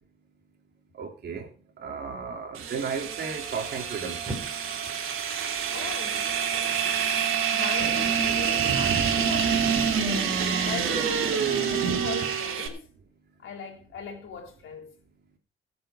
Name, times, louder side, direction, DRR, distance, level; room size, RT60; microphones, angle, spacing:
voice 1, 1.0-1.5 1.8-4.4, right 5 dB, 55° right, 3.1 m, -34 dB
sound 1, 2.0-9.5, right 1 dB, 15° right, 5.3 m, -47 dB
sound 2, 2.6-12.7, right 7 dB, 75° right, 3.1 m, -26 dB
voice 2, 5.7-6.9 7.5-10.3 10.6-12.9 13.4-14.9, left 6 dB, 70° left, 3.6 m, -40 dB
18.0 x 7.7 x 5.0 m
cardioid pair, 145°, 21 cm